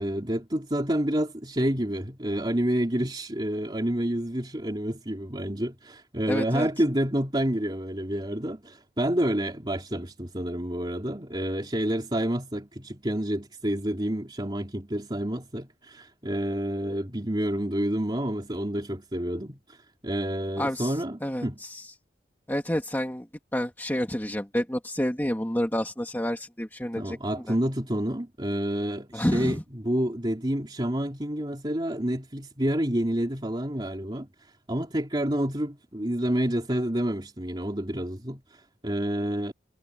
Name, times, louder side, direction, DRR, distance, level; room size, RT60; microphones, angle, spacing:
voice 1, 0.0-21.6 27.0-39.5, right 1 dB, 25° right, 3.3 m, -29 dB
voice 2, 6.3-6.7 20.6-20.9 21.2-21.9 22.5-23.3 23.5-27.2 27.5-27.6 29.1-29.6, equal, 10° left, 2.1 m, -29 dB
head